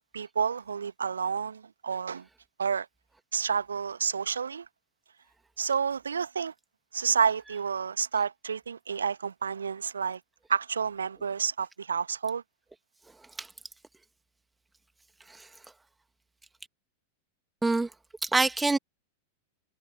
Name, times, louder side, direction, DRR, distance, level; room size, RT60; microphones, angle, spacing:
voice 1, 0.0-2.2 2.6-2.9 3.3-4.6 5.6-6.5 6.9-10.2 10.5-12.4, right 6 dB, 70° right, 1.5 m, -30 dB
voice 2, 18.2-18.8, right 3 dB, 10° right, 2.6 m, -26 dB
figure-of-eight pair, 90°, 0 cm